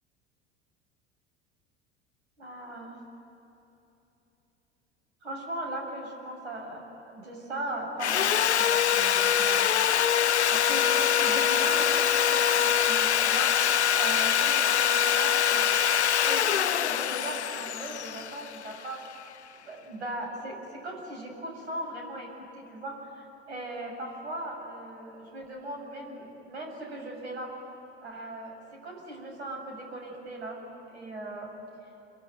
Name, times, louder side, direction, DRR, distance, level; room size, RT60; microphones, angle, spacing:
voice 1, 2.4-2.9 5.2-9.7 10.0-10.1 10.5-15.7 16.3-19.0 19.6-27.5 28.0-28.6 28.8-30.6 30.9-31.5, right 1 dB, 85° right, 0 dB, 7.2 m, -38 dB
Sawing, 8.0-19.1, left 9 dB, 90° left, 0.6 m, -24 dB
27.0 x 23.5 x 9.2 m, 3.0 s
hypercardioid pair, 75°, 32 cm